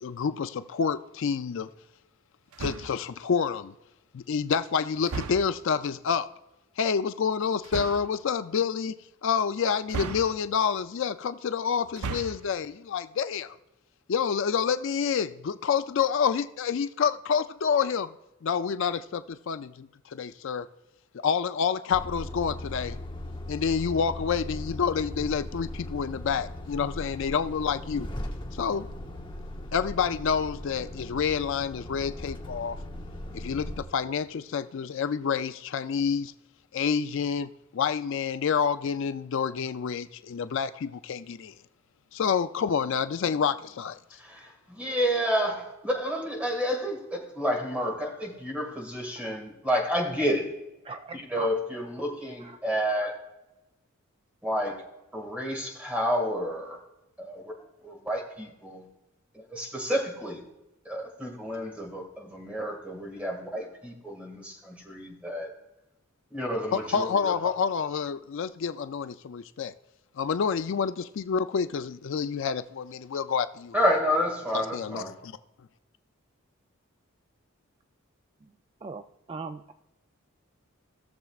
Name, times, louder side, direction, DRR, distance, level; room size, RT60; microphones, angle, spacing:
voice 1, 0.0-1.7 2.6-3.7 4.1-6.3 6.8-9.0 9.2-13.6 14.1-18.1 18.4-20.7 21.1-23.0 23.5-28.1 28.5-28.9 29.7-32.8 33.3-36.3 36.7-41.5 42.1-44.0 66.7-69.7 70.2-73.7 74.5-75.3, left 6 dB, 60° left, 12 dB, 0.4 m, -28 dB
sound 1, 2.5-3.1 5.1-5.7 7.6-8.2 9.9-10.7 11.9-12.6, right 5 dB, 90° right, 0.5 m, -36 dB
Truck, 21.9-33.8, left 1 dB, 25° left, 0.9 m, -38 dB
voice 2, 44.2-50.5 51.1-53.2 54.4-54.8 55.1-56.8 57.2-57.5 57.8-58.9 59.5-60.4 60.9-65.5 66.3-67.4 73.7-75.1, equal, 5° right, 1 dB, 1.9 m, -30 dB
voice 3, 50.8-51.5 52.4-52.6 53.0-53.1 78.8-79.0 79.3-79.7, right 4 dB, 25° right, 7 dB, 0.3 m, -38 dB
18.0 x 7.0 x 2.4 m, 0.98 s
head